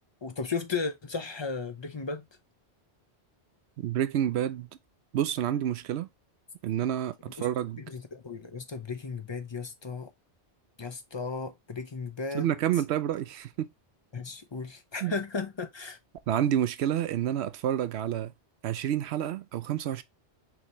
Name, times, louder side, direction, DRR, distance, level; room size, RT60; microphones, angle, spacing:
voice 1, 0.2-2.3 7.4-7.5 7.8-10.1 10.8-12.5 14.1-16.0, left 4 dB, 30° left, 0.6 m, -35 dB
voice 2, 3.8-4.7 5.1-6.1 6.6-7.8 12.3-13.7 15.0-15.1 16.3-18.3 18.6-20.0, right 10 dB, 75° right, 0.9 m, -29 dB
6.0 x 2.9 x 3.0 m
omnidirectional pair, 1.1 m